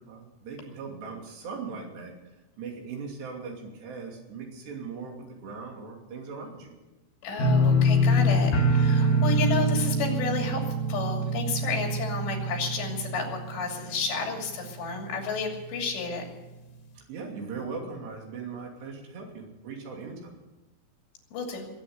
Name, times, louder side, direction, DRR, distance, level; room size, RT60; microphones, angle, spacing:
voice 1, 0.0-2.1 2.6-6.7 16.9-20.4, right 5 dB, 75° right, 1 dB, 4.9 m, -39 dB
voice 2, 7.2-10.6 10.9-16.2 21.3-21.7, left 5 dB, 85° left, 2 dB, 4.9 m, -31 dB
sound 1, 7.4-14.3 14.6-15.1 15.5-15.6, right 1 dB, 60° left, 3.1 m, -25 dB
20.5 x 8.7 x 8.0 m, 1.1 s
omnidirectional pair, 4.9 m